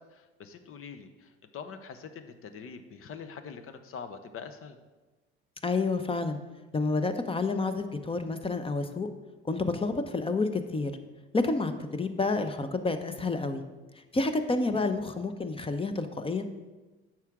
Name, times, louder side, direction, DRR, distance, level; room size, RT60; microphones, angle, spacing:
voice 1, 0.1-4.8, left 6 dB, 45° left, 9 dB, 0.9 m, -44 dB
voice 2, 5.6-6.4 6.7-9.1 9.4-10.9 11.3-13.6 14.1-16.5, left 3 dB, 20° left, 9 dB, 0.8 m, -29 dB
9.0 x 6.0 x 3.6 m, 1.2 s
hypercardioid pair, 70°, 30 cm